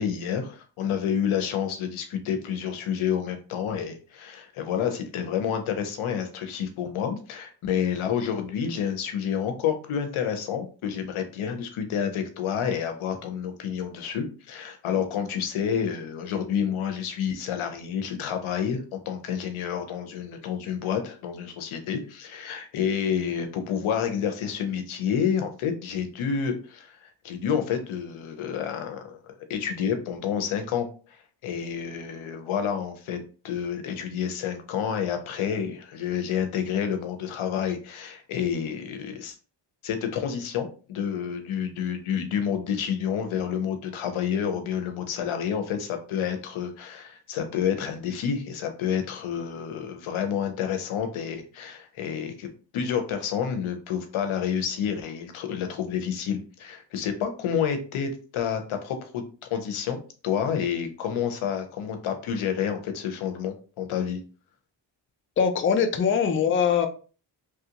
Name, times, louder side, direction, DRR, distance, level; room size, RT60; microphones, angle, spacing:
voice 1, 0.0-30.9 31.4-33.2 33.4-39.3 39.8-52.5 52.7-59.2 59.5-60.0 60.2-64.2, left 8 dB, 85° left, 7 dB, 0.7 m, -29 dB
voice 2, 65.4-66.9, left 7 dB, 25° left, 7 dB, 0.4 m, -22 dB
3.0 x 2.4 x 2.8 m, 0.36 s
cardioid pair, 85°, 48 cm